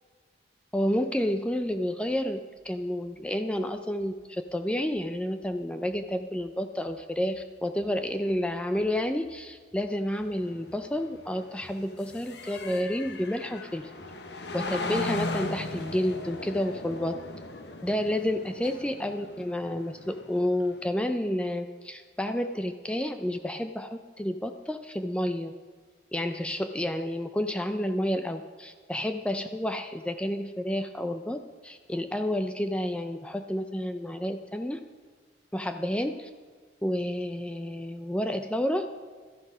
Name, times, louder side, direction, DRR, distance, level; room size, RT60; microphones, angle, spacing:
voice 1, 0.7-2.4 2.6-13.9 14.5-17.2 17.8-25.5 26.1-34.8 35.5-36.3 36.8-38.9, left 1 dB, 5° left, 7 dB, 0.4 m, -30 dB
sound 1, 1.1-1.8 2.1-2.7 3.0-3.7 4.0-4.7 4.9-5.6 5.9-6.6 6.9-7.5 7.8-8.5 8.8-9.4 9.7-10.4 10.7-11.3 11.6-12.3 12.6-13.2 13.5-13.6 14.0-14.6 14.9-15.1 15.4-15.9, equal, 45° left, 3.6 m, -60 dB
sound 2, 10.1-20.8, left 2 dB, 75° left, 1.0 m, -38 dB
13.0 x 10.5 x 5.5 m, 1.5 s
head